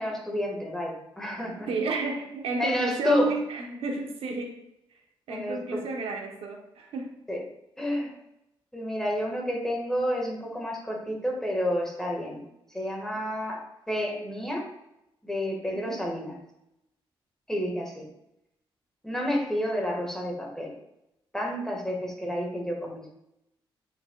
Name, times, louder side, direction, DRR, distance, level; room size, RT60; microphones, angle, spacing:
voice 1, 0.0-1.7 2.6-3.3 5.3-5.8 7.3-7.4 7.8-8.1 8.7-12.4 12.7-14.7 15.2-16.4 17.5-18.0 19.0-20.7 21.3-23.1, equal, 5° left, -1 dB, 1.7 m, -30 dB
voice 2, 1.7-5.0 5.3-7.2 13.1-13.3 15.7-16.0, right 3 dB, 90° right, 2 dB, 1.1 m, -32 dB
9.1 x 4.7 x 2.4 m, 0.86 s
cardioid pair, 110°, 9 cm